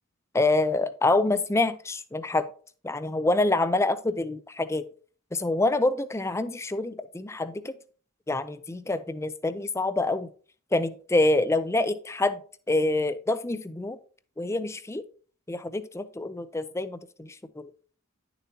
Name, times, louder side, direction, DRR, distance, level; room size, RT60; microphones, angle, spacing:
voice 1, 0.3-2.5 2.8-4.8 5.3-7.8 8.3-10.3 10.7-12.4 12.7-14.0 14.4-15.0 15.5-17.7, left 2 dB, 15° left, 12 dB, 0.5 m, -26 dB
10.5 x 6.9 x 2.9 m, 0.42 s
head